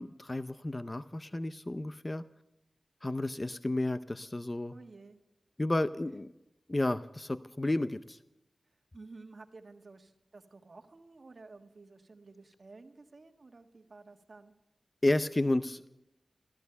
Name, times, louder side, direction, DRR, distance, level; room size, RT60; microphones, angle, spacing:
voice 1, 0.0-2.2 3.0-4.7 5.6-6.3 6.7-8.2 15.0-15.8, left 2 dB, 30° left, 13 dB, 0.5 m, -32 dB
voice 2, 4.7-5.2 8.9-14.5, right 3 dB, 55° right, 6 dB, 1.5 m, -53 dB
14.5 x 13.5 x 6.8 m, 0.89 s
wide cardioid pair, 65°, 0 cm